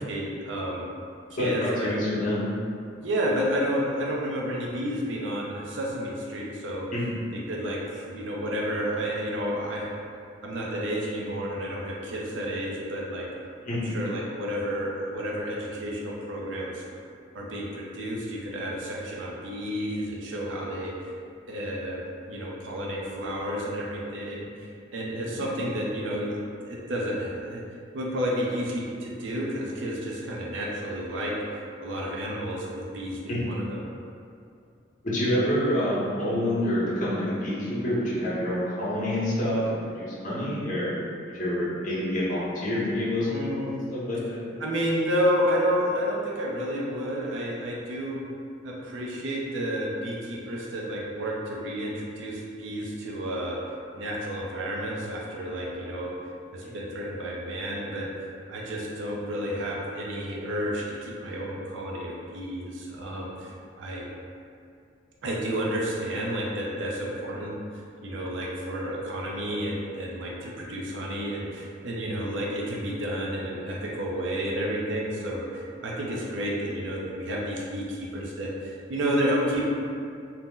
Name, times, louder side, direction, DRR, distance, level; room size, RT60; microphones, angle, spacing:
voice 1, 0.1-0.8 1.3-1.9 3.0-6.9 7.5-9.9 10.4-13.3 13.8-16.8 17.3-20.9 21.5-22.0 22.3-27.6 27.9-33.8 43.3-43.7 44.6-48.2 48.6-53.6 53.9-56.1 56.5-58.1 58.5-63.5 63.8-64.1 65.2-67.6 68.0-79.6, equal, 70° right, -3 dB, 0.5 m, -31 dB
voice 2, 1.4-2.4 6.9-7.2 13.6-14.0 25.3-25.4 33.3-33.5 35.0-40.9 41.3-43.6 43.9-44.6 56.6-56.8, left 1 dB, 45° left, -8 dB, 0.8 m, -27 dB
2.7 x 2.0 x 3.6 m, 2.5 s
head